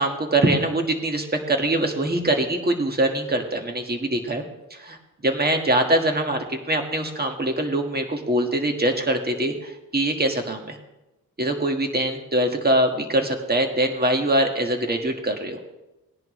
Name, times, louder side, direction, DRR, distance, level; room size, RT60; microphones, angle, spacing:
voice 1, 0.0-4.4 4.7-5.0 5.2-10.8 11.4-15.6, right 1 dB, 25° right, 4 dB, 1.7 m, -23 dB
19.0 x 10.5 x 3.2 m, 0.98 s
cardioid pair, 75°, 35 cm